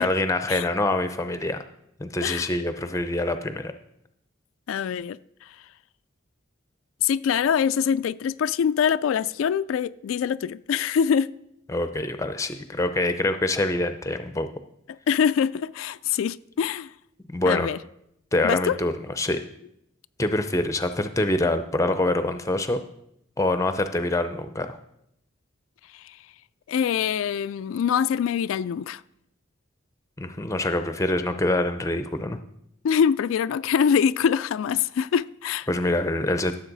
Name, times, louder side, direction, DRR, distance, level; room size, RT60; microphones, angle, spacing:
voice 1, 0.0-1.6 2.0-3.7 11.7-14.5 17.3-17.7 18.3-19.4 20.2-22.8 23.4-24.8 30.2-32.4 35.7-36.6, left 2 dB, 15° left, 0.5 m, -25 dB
voice 2, 4.7-5.2 7.0-11.3 15.1-16.9 17.5-17.8 18.4-18.8 25.9-26.2 26.7-29.0 32.8-35.7, left 7 dB, 85° left, 0.3 m, -24 dB
15.0 x 7.3 x 4.0 m
head